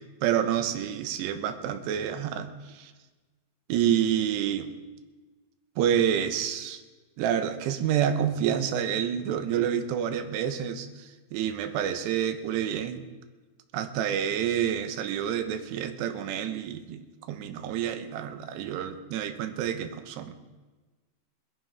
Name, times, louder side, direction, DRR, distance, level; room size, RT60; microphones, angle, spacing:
voice 1, 0.2-2.9 3.7-4.7 5.8-6.8 7.2-13.1 13.7-20.3, right 9 dB, 80° right, 8 dB, 2.9 m, -28 dB
26.5 x 11.0 x 3.5 m, 1.3 s
omnidirectional pair, 5.1 m